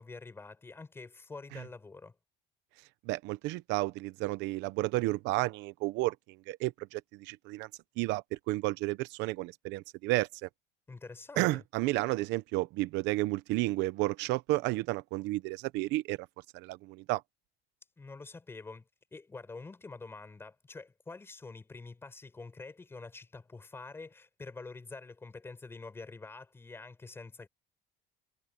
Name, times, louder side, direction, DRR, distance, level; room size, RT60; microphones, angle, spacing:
voice 1, 0.0-2.2 10.9-11.6 18.0-27.5, left 3 dB, 10° left, 6.1 m, -47 dB
voice 2, 3.1-7.7 8.0-10.5 11.4-16.2 16.5-17.2, right 19 dB, 70° right, 0.8 m, -32 dB
cardioid pair, 175°, 19 cm